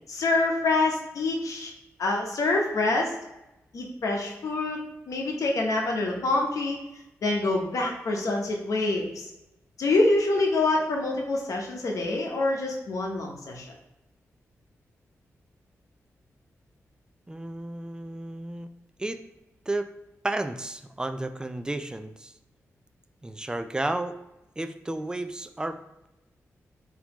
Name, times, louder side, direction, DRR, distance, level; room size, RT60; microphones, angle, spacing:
voice 1, 0.1-1.7 2.0-3.2 3.7-4.8 5.1-6.8 7.2-9.3 9.8-13.7, left 2 dB, 75° left, 0 dB, 0.8 m, -26 dB
voice 2, 17.3-18.7 19.0-19.2 19.7-19.9 20.2-22.3 23.2-24.2 24.6-25.8, right 2 dB, 15° right, 9 dB, 0.3 m, -32 dB
4.0 x 2.8 x 2.9 m, 0.93 s
cardioid pair, 60°, 6 cm